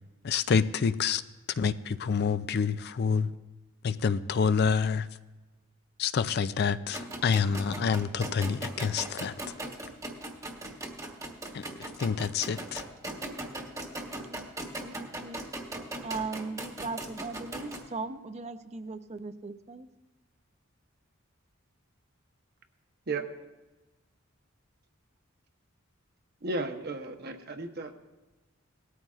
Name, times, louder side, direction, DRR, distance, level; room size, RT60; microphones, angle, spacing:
voice 1, 0.2-1.2 1.6-3.3 3.8-5.1 6.0-9.3 11.5-12.8, left 6 dB, 50° left, 14 dB, 0.4 m, -27 dB
sound 1, 6.9-17.8, right 1 dB, 15° right, 1.1 m, -39 dB
voice 2, 14.0-14.5 14.8-15.4 16.0-19.9, right 4 dB, 30° right, 10 dB, 0.5 m, -38 dB
voice 3, 26.4-27.9, right 3 dB, 50° right, 6 dB, 0.9 m, -34 dB
18.5 x 13.0 x 2.4 m, 1.1 s
head